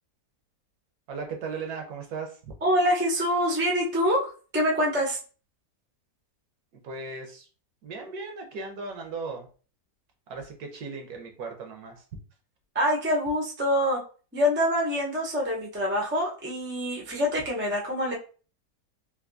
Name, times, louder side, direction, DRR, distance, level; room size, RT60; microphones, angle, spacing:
voice 1, 1.1-2.5 6.8-7.5 7.8-9.5 10.3-12.0, right 4 dB, 70° right, 3 dB, 1.2 m, -37 dB
voice 2, 2.6-5.2 12.7-14.0 14.3-18.1, equal, 15° right, -2 dB, 0.4 m, -25 dB
3.5 x 2.6 x 2.6 m, 0.38 s
omnidirectional pair, 1.8 m